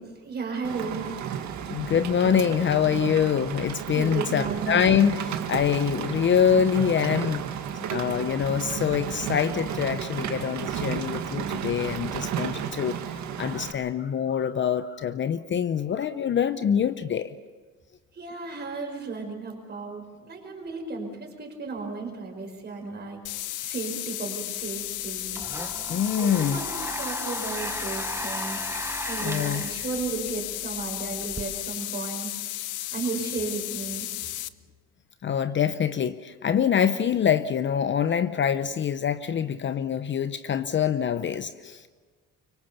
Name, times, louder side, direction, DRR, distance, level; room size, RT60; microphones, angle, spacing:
voice 1, 0.2-1.2 3.9-5.0 18.1-23.2 23.6-25.4 26.2-26.7 27.0-28.7 29.1-32.3 32.9-34.1, right 4 dB, 35° right, 2 dB, 5.4 m, -34 dB
Rain, 0.6-13.7, right 8 dB, 65° right, 2.0 m, -33 dB
voice 2, 1.7-7.6 7.9-13.0 13.4-17.3 25.9-26.6 29.2-29.6 35.2-41.9, left 8 dB, 40° left, 12 dB, 0.7 m, -25 dB
analog noise, 23.2-34.5, left 15 dB, 75° left, 0.8 m, -34 dB
Domestic sounds home sounds, 24.8-31.4, right 2 dB, 10° right, 1.1 m, -36 dB
24.5 x 23.5 x 7.0 m, 1.4 s
cardioid pair, 150°, 31 cm